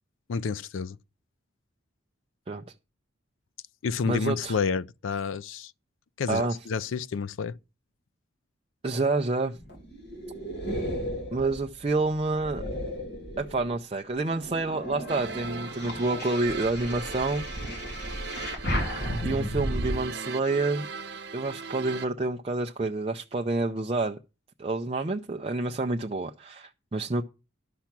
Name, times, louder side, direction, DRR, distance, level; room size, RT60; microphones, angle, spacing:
voice 1, 0.3-1.0 3.8-5.7 6.2-7.6, left 5 dB, 75° left, 0.4 m, -30 dB
voice 2, 4.0-4.6 6.3-6.5 8.8-9.6 11.3-12.6 13.4-17.5 18.5-18.6 19.2-20.9 21.3-24.2 24.6-27.2, right 3 dB, 30° right, 0.4 m, -28 dB
sound 1, 9.6-13.8 14.3-20.0, equal, 50° left, 1.9 m, -34 dB
sound 2, 15.1-22.1, right 4 dB, 55° right, 0.9 m, -39 dB
11.5 x 5.8 x 5.9 m
head